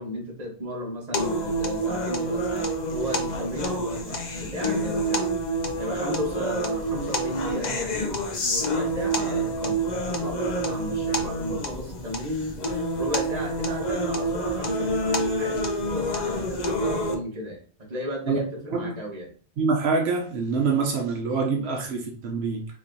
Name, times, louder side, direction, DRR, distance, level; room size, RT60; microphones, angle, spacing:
voice 1, 0.0-5.3 5.8-8.2 8.4-19.3, equal, 40° right, -1 dB, 1.3 m, -34 dB
sound 1, 1.1-17.1, right 1 dB, 50° left, 0.7 m, -27 dB
voice 2, 19.6-22.7, right 4 dB, 85° right, 2 dB, 1.0 m, -25 dB
4.2 x 3.0 x 2.6 m, 0.43 s
omnidirectional pair, 1.1 m